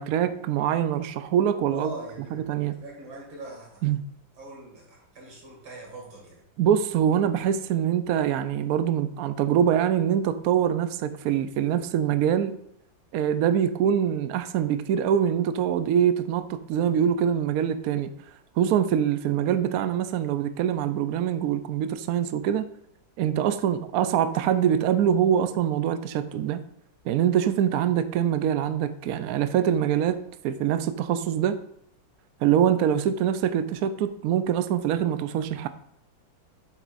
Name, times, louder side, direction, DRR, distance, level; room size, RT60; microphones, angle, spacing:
voice 1, 0.0-1.9 2.3-2.7 3.8-4.0 6.6-12.6 13.1-18.1 18.6-22.7 23.2-26.6 27.0-31.6 32.4-35.7, right 9 dB, 85° right, 0.8 m, -24 dB
voice 2, 1.7-2.4 2.7-3.9 4.3-6.4, right 2 dB, 70° right, 3.0 m, -42 dB
8.1 x 7.2 x 2.5 m
omnidirectional pair, 2.2 m